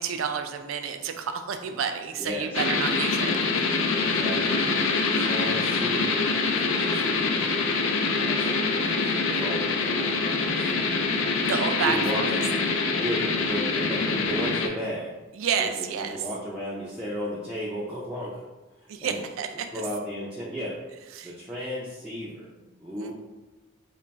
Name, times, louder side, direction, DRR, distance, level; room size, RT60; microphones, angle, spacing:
voice 1, 0.0-3.3 4.9-5.1 11.4-12.3 15.3-16.3 18.9-19.7 21.1-21.3 23.0-23.1, right 6 dB, 80° right, 6 dB, 0.4 m, -30 dB
voice 2, 2.2-2.6 4.0-4.7 5.0-7.7 8.2-8.5 8.8-10.7 11.8-12.4 13.0-15.1 15.6-18.4 19.0-19.2 19.7-20.8 21.2-22.5 22.8-23.1, equal, 5° right, -6 dB, 0.4 m, -34 dB
sound 1, 2.5-14.7, left 4 dB, 75° left, 0.4 m, -25 dB
3.2 x 2.3 x 3.9 m, 1.1 s
head